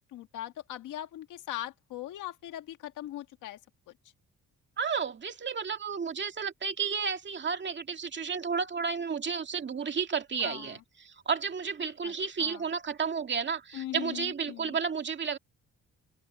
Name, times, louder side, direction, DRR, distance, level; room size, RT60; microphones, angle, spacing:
voice 1, 0.0-3.6 10.4-10.8 12.0-12.1 12.4-12.6 13.7-14.8, left 13 dB, 85° left, 1.6 m, -40 dB
voice 2, 4.8-15.4, right 6 dB, 40° right, 2.2 m, -32 dB
open air
cardioid pair, 90°, 30 cm